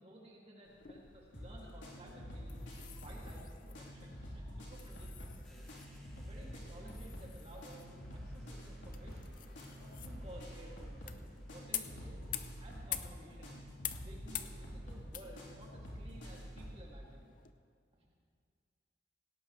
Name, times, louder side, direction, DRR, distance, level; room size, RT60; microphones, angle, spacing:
voice 1, 0.0-2.6 3.0-5.7 6.2-9.4 9.8-12.2 12.6-13.7 14.0-17.4 18.0-18.1, right 1 dB, 35° right, -3 dB, 2.5 m, -55 dB
sound 1, 0.6-17.5, left 11 dB, 45° left, 0.6 m, -49 dB
sound 2, 1.3-16.8, equal, 85° left, 3.7 m, -47 dB
sound 3, 5.4-12.3, equal, 5° left, 2.0 m, -64 dB
18.0 x 17.5 x 3.3 m, 2.1 s
head